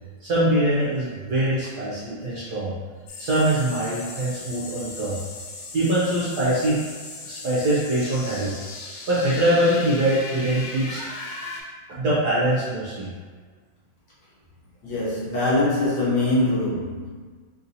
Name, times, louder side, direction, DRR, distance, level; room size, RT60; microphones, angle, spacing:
voice 1, 0.2-2.7 3.2-5.2 5.7-6.8 7.2-8.5 9.1-11.0 11.9-13.1, right 1 dB, 65° right, -8 dB, 1.0 m, -23 dB
sound 1, 3.1-11.6, left 3 dB, 80° left, 1.5 m, -38 dB
voice 2, 14.8-17.1, left 2 dB, 65° left, -8 dB, 1.5 m, -23 dB
3.6 x 2.7 x 2.6 m, 1.5 s
omnidirectional pair, 2.3 m